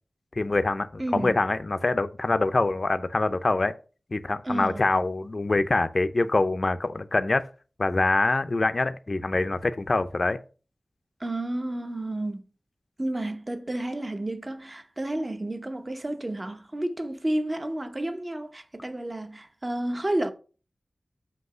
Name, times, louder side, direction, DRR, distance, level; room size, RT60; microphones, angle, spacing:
voice 1, 0.4-3.8 4.1-7.5 7.8-10.4, left 2 dB, 50° left, 0.6 m, -25 dB
voice 2, 1.0-1.4 4.4-4.9 11.2-12.4 13.0-20.3, right 1 dB, 30° right, 0.9 m, -31 dB
8.0 x 2.9 x 5.5 m
wide cardioid pair, 55°, 0 cm